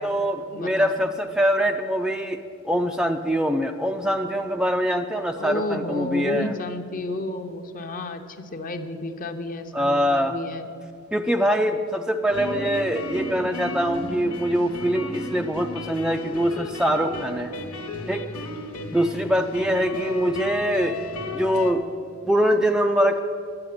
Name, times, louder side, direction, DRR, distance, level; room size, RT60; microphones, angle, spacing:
voice 1, 0.0-6.5 9.7-10.4 11.1-17.5 18.1-18.2 18.9-21.0 21.3-21.8 22.2-23.2, equal, 5° right, 5 dB, 0.4 m, -23 dB
voice 2, 0.5-0.9 5.4-10.7, left 2 dB, 40° left, 7 dB, 0.8 m, -31 dB
sound 1, 12.3-21.7, left 2 dB, 90° left, 1.3 m, -33 dB
10.5 x 9.2 x 8.6 m, 2.5 s
head